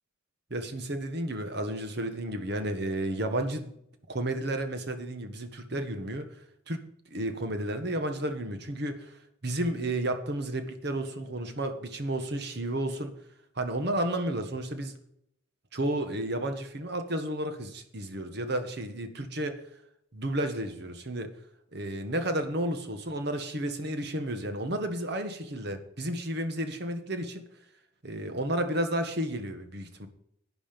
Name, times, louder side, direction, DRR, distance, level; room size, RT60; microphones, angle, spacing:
voice 1, 0.5-3.7 4.1-6.3 6.7-6.8 7.1-13.2 13.6-15.0 15.7-19.6 20.1-21.3 21.7-27.4 28.0-30.1, right 1 dB, 55° right, 8 dB, 1.3 m, -32 dB
11.5 x 9.6 x 5.2 m, 0.74 s
head